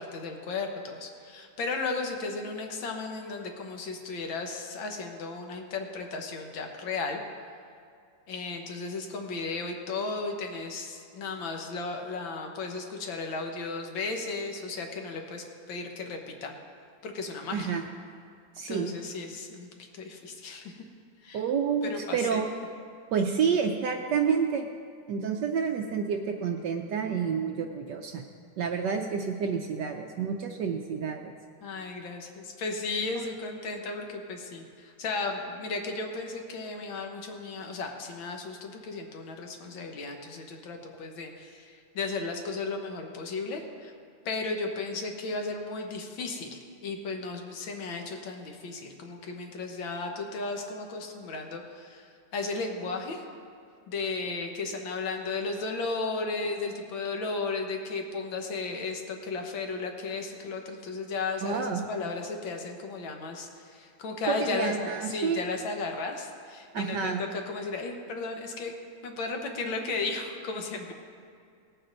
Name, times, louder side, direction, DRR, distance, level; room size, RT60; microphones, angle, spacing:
voice 1, 0.0-7.2 8.3-16.5 17.0-17.7 18.7-20.7 21.2-21.4 21.8-22.4 31.6-43.9 44.2-53.2 53.9-68.7 69.0-70.9, left 3 dB, 65° left, 3 dB, 1.8 m, -35 dB
voice 2, 17.5-17.8 18.5-18.9 21.3-22.5 23.1-24.7 25.1-28.2 28.6-31.3 33.1-33.3 61.4-61.9 64.2-65.4 66.7-67.2, right 6 dB, 70° right, 4 dB, 1.1 m, -29 dB
18.0 x 8.5 x 4.0 m, 2.4 s
omnidirectional pair, 2.3 m